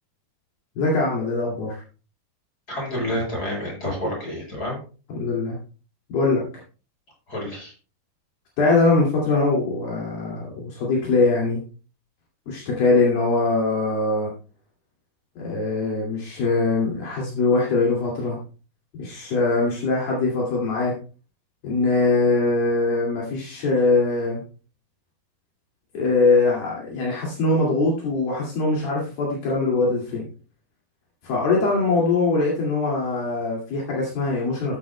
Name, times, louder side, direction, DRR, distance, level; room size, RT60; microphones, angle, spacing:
voice 1, 0.8-1.8 5.1-5.6 6.1-6.4 8.6-11.6 12.5-14.3 15.4-18.4 18.9-20.9 21.6-24.4 25.9-30.3 31.2-34.8, left 3 dB, 70° left, -3 dB, 4.2 m, -22 dB
voice 2, 2.7-4.8 7.3-7.7, left 1 dB, 20° left, -2 dB, 7.3 m, -29 dB
14.5 x 10.5 x 2.2 m, 0.35 s
omnidirectional pair, 4.5 m